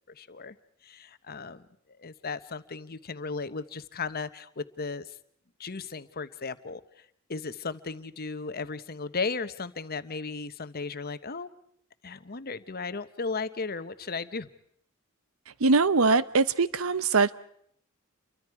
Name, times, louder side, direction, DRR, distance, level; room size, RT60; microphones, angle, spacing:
voice 1, 0.2-0.6 0.8-1.6 2.0-5.1 5.6-6.8 7.3-11.5 12.0-14.5, left 4 dB, 45° left, 13 dB, 1.0 m, -35 dB
voice 2, 15.6-17.3, right 4 dB, 75° right, 16 dB, 0.8 m, -22 dB
29.0 x 24.0 x 4.8 m, 0.67 s
head